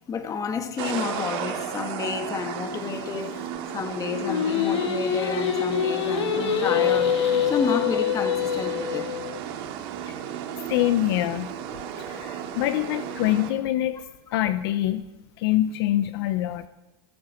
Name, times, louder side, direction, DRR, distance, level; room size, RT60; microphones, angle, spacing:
voice 1, 0.1-7.2 7.4-9.1, left 5 dB, 25° left, 1.8 m, -30 dB
sound 1, 0.8-13.5, right 9 dB, 65° right, 2.5 m, -34 dB
Singing, 4.2-9.4, left 8 dB, 85° left, 2.0 m, -25 dB
voice 2, 10.7-11.5 12.1-14.0 14.3-15.0 15.4-16.7, left 14 dB, 70° left, 0.8 m, -25 dB
20.0 x 15.0 x 4.5 m
supercardioid pair, 130°, 14 cm